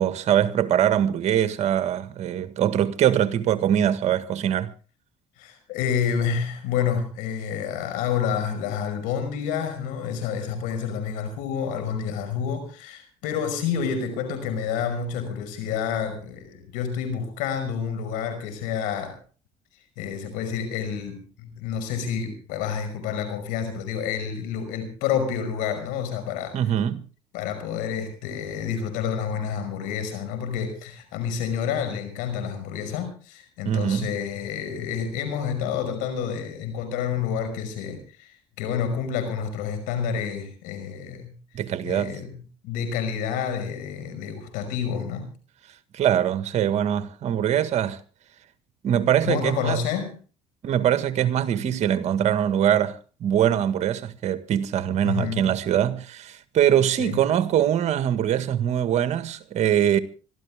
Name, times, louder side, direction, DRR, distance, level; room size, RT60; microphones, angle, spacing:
voice 1, 0.0-4.7 26.5-27.0 33.6-34.1 41.5-42.2 45.9-48.0 48.8-49.8 50.6-60.0, right 10 dB, 60° right, 1.7 m, -23 dB
voice 2, 5.4-19.2 20.0-26.6 27.3-45.3 49.2-50.1 55.0-55.5 57.0-57.2, left 7 dB, 85° left, 5.5 m, -29 dB
25.5 x 13.5 x 3.6 m
supercardioid pair, 95°, 13 cm